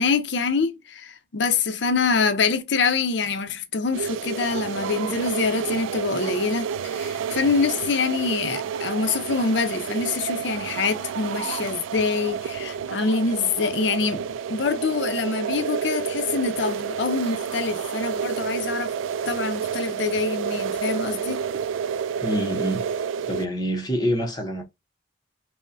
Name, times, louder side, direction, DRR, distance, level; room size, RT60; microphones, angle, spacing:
voice 1, 0.0-19.0 19.3-21.4, left 4 dB, 60° left, 0.5 m, -25 dB
sound 1, 3.9-23.5, right 7 dB, 80° right, 0.3 m, -30 dB
voice 2, 22.2-22.8 23.3-24.6, equal, 20° left, 0.7 m, -26 dB
5.3 x 2.1 x 2.5 m
head